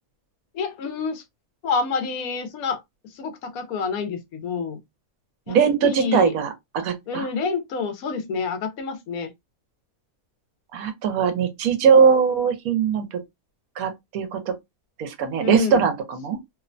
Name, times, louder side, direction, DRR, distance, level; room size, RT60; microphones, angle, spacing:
voice 1, 0.5-1.2 1.6-4.8 5.5-6.3 7.1-9.3 15.4-15.8, left 5 dB, 80° left, 1.1 m, -28 dB
voice 2, 5.5-7.3 10.7-13.1 13.8-14.5 15.0-16.4, right 6 dB, 80° right, 1.1 m, -20 dB
2.9 x 2.1 x 2.5 m
omnidirectional pair, 1.5 m